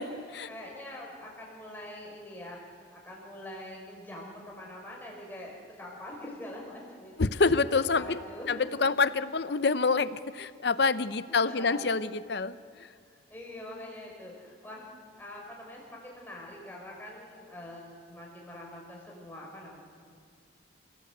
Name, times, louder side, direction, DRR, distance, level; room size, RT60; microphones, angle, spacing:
voice 1, 0.0-7.3 7.8-8.9 11.3-12.0 12.6-12.7 13.0-14.9 15.2-19.8, left 1 dB, 10° left, -3 dB, 5.1 m, -44 dB
voice 2, 7.2-8.2 8.5-12.6, left 4 dB, 60° left, 14 dB, 0.7 m, -26 dB
29.0 x 17.5 x 8.0 m, 2.2 s
head